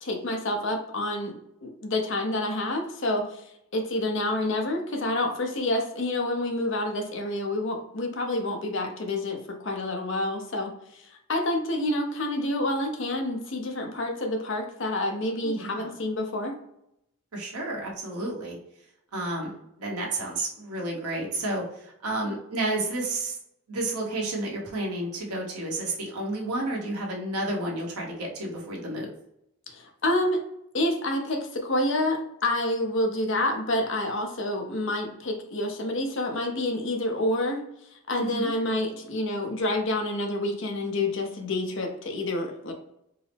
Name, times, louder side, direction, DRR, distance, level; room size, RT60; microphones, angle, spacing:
voice 1, 0.0-1.3 1.6-3.4 3.7-16.5 29.7-30.4 30.7-37.6 38.1-42.7, left 1 dB, 55° left, 2 dB, 0.7 m, -28 dB
voice 2, 15.4-15.9 17.3-18.6 19.1-19.5 19.8-23.4 23.7-29.1 38.2-38.5, right 2 dB, 90° right, -2 dB, 1.1 m, -31 dB
4.6 x 2.0 x 3.3 m, 0.78 s
head